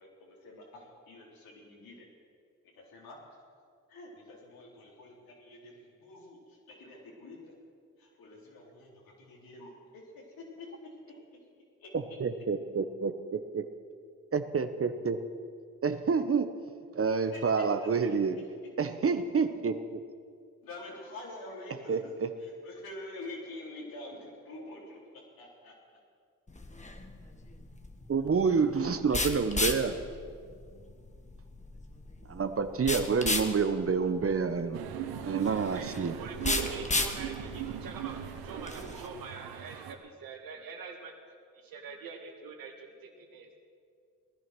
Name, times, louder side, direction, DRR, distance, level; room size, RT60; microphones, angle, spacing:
voice 1, 0.0-2.1 2.8-3.2 3.9-7.5 8.0-10.9 11.8-11.9 17.3-17.9 20.6-22.1 22.4-25.0 25.4-25.7, left 2 dB, 75° left, -3 dB, 4.2 m, -47 dB
voice 2, 11.9-13.1 13.5-13.6 14.3-15.2 15.8-16.6 16.9-18.4 18.8-20.0 21.9-22.3 28.1-30.0 32.3-34.8 35.2-36.1, right 5 dB, 40° right, 9 dB, 1.1 m, -28 dB
sound 1, 26.5-39.1, left 2 dB, 20° left, 1.7 m, -35 dB
sound 2, 34.7-39.9, right 10 dB, 85° right, 1.0 m, -39 dB
voice 3, 35.7-41.2 41.5-43.5, right 5 dB, 70° right, 3 dB, 2.3 m, -44 dB
18.0 x 11.0 x 6.2 m, 2.2 s
supercardioid pair, 55°, 36 cm